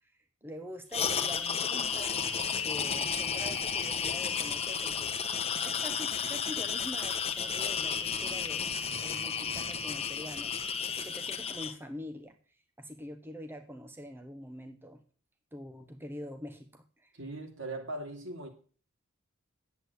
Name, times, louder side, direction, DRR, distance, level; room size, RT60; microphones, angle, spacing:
voice 1, 0.0-15.0 15.5-17.2, equal, 10° right, 7 dB, 1.0 m, -45 dB
sound 1, 0.9-11.7, left 6 dB, 30° left, 1.2 m, -32 dB
voice 2, 17.1-18.5, right 2 dB, 60° right, 4 dB, 3.0 m, -39 dB
10.5 x 8.2 x 8.2 m, 0.41 s
head